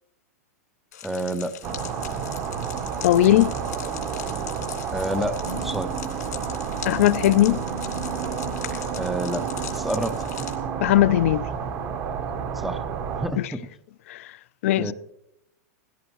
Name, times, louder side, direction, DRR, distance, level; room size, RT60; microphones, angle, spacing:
sound 1, 0.9-10.5, left 10 dB, 90° left, 2.8 m, -40 dB
voice 1, 1.0-1.5 4.9-5.9 9.0-10.1 12.6-12.8 13.2-13.7 14.8-14.9, right 1 dB, ahead, 0.5 m, -28 dB
sound 2, 1.6-13.3, right 6 dB, 30° right, 0.8 m, -30 dB
voice 2, 3.0-3.5 6.8-7.6 10.8-11.5 13.4-13.5 14.1-14.3 14.6-14.9, left 14 dB, 55° left, 0.4 m, -19 dB
17.5 x 16.0 x 3.0 m
supercardioid pair, 160°, 9 cm